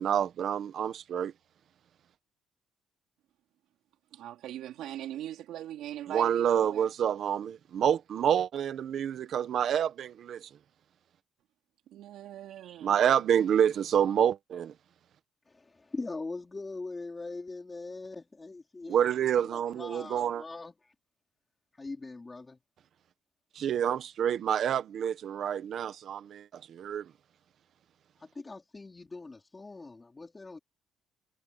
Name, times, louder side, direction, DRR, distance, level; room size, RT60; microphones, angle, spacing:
voice 1, 0.0-1.3 6.1-10.5 12.8-14.7 18.9-20.4 23.5-27.1, right 9 dB, 55° right, 1.5 m, -28 dB
voice 2, 4.1-6.9 11.9-13.0, right 12 dB, 80° right, 3.8 m, -41 dB
voice 3, 15.5-20.9 21.7-22.6 28.2-30.6, left 3 dB, 15° left, 4.0 m, -42 dB
cardioid pair, 150°, 0 cm